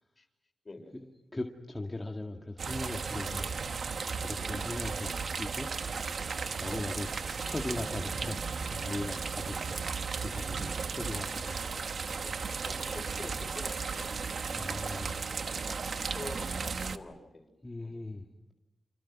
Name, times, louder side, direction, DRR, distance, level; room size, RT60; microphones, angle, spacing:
voice 1, 0.9-3.5 4.2-5.7 6.6-9.8 10.2-11.6 14.5-15.3 17.6-18.3, left 2 dB, 20° left, 1 dB, 2.0 m, -39 dB
sound 1, 2.6-17.0, right 5 dB, 65° right, 1.1 m, -35 dB
voice 2, 4.4-4.7 6.6-6.9 10.7-10.8 11.1-11.3 12.1-12.3 12.6-15.0 15.6-17.5 17.8-18.0, left 2 dB, 40° left, 5 dB, 5.8 m, -47 dB
29.5 x 26.0 x 6.0 m, 1.0 s
cardioid pair, 65°, 0 cm